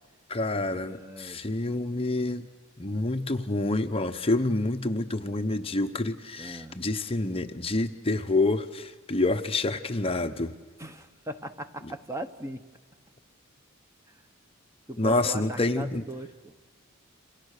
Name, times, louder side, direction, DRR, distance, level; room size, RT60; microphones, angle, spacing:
voice 1, 0.3-2.5 2.8-10.5 15.0-16.0, left 2 dB, 30° left, 7 dB, 1.0 m, -28 dB
voice 2, 0.8-1.4 6.4-6.8 10.8-12.6 14.1-14.2 14.9-16.5, right 1 dB, 15° right, 9 dB, 1.1 m, -39 dB
28.5 x 26.5 x 6.6 m, 1.3 s
head